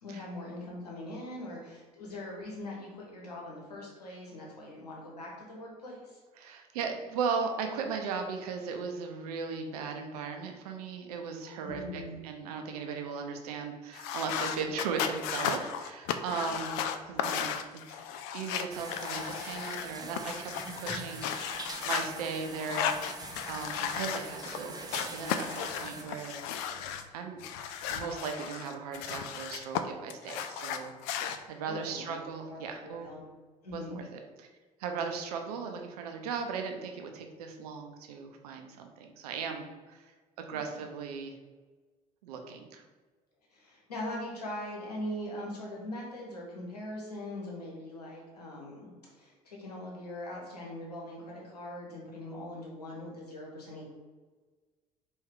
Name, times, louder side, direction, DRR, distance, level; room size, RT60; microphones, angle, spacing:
voice 1, 0.0-6.2 11.6-12.2 16.3-16.5 31.7-32.1 32.5-33.2 33.6-34.0 40.5-40.8 43.5-53.8, left 1 dB, 85° left, -3 dB, 1.1 m, -41 dB
voice 2, 6.4-17.5 17.9-18.0 18.3-20.5 20.8-23.1 23.5-26.4 27.1-27.4 27.9-33.1 33.7-34.0 34.4-34.5 34.8-40.1 40.4-41.4 42.2-42.8, right 5 dB, 75° right, 4 dB, 0.6 m, -37 dB
sound 1, 13.9-19.8 20.1-22.1 22.6-24.6 24.9-27.0 27.4-29.8 30.1-31.4, left 8 dB, 60° left, 0.4 m, -35 dB
sound 2, 18.7-26.0, right 2 dB, 20° right, 0.7 m, -44 dB
4.5 x 2.6 x 3.7 m, 1.3 s
figure-of-eight pair, 60°, 20 cm